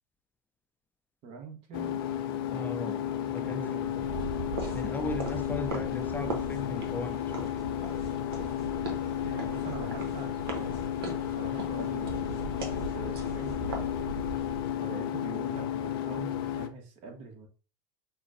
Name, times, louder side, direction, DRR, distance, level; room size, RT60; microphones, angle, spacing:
voice 1, 1.2-2.0 3.4-4.1 8.8-8.9 9.2-13.6 14.8-17.5, right 5 dB, 55° right, 1.1 m, -44 dB
sound 1, 1.7-16.7, left 10 dB, 75° left, 0.4 m, -33 dB
voice 2, 2.5-3.0 3.3-3.7 4.7-7.5, left 2 dB, 15° left, 0.4 m, -37 dB
sound 2, 3.8-14.7, right 2 dB, 85° right, 0.9 m, -39 dB
5.6 x 2.1 x 2.5 m
hypercardioid pair, 95°, 12 cm